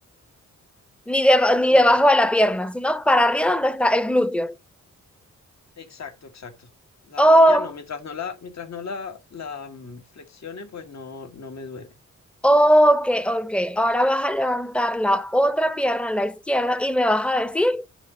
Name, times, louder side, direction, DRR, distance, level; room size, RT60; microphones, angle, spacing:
voice 1, 1.1-4.5 7.2-7.7 12.4-17.8, equal, 5° left, 0.7 m, -19 dB
voice 2, 5.8-6.7 7.0-12.0, left 5 dB, 60° left, 1.5 m, -37 dB
9.8 x 4.0 x 4.9 m
cardioid pair, 75°, 31 cm